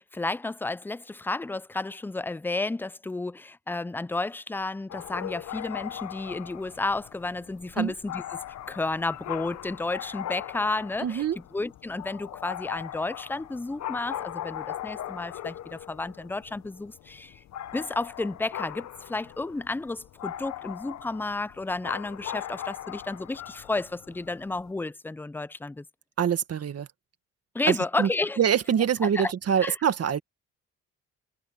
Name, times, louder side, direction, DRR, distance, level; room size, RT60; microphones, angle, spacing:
voice 1, 0.0-11.2 11.5-17.4 17.7-25.8 27.5-28.4 29.1-29.3 29.6-29.7, left 2 dB, 5° left, 0.4 m, -32 dB
sound 1, 4.9-24.7, left 11 dB, 65° left, 1.0 m, -39 dB
voice 2, 11.0-11.4 26.2-26.9 27.7-28.1 28.4-30.2, right 8 dB, 55° right, 1.9 m, -25 dB
cardioid pair, 90°, 30 cm